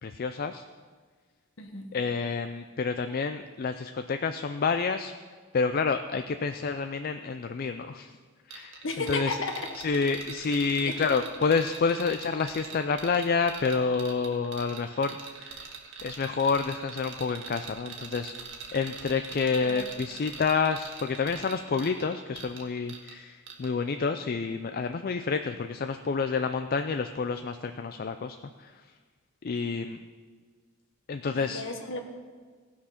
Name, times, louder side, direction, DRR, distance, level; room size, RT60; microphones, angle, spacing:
voice 1, 0.0-0.6 1.9-5.1 5.5-8.1 8.5-9.4 9.8-15.2 15.5-15.7 16.0-18.3 18.7-28.7 29.4-30.0 31.1-31.6, left 5 dB, 45° left, 8 dB, 0.4 m, -29 dB
voice 2, 1.6-1.9 8.8-9.5 10.8-11.1 19.6-19.9 31.3-32.0, left 3 dB, 60° left, 5 dB, 1.3 m, -34 dB
sound 1, 8.5-23.2 23.5-23.7, right 6 dB, 60° right, 1.7 m, -43 dB
17.5 x 6.2 x 5.8 m, 1.5 s
head